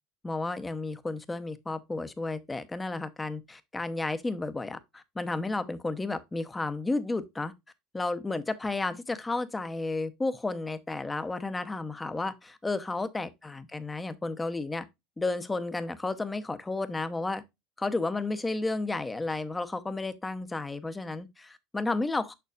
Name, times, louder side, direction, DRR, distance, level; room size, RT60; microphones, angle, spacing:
voice 1, 0.2-7.5 7.9-14.9 15.2-17.4 17.8-22.3, left 3 dB, 10° left, 0.7 m, -32 dB
6.8 x 6.0 x 2.3 m
supercardioid pair, 130°, 0 cm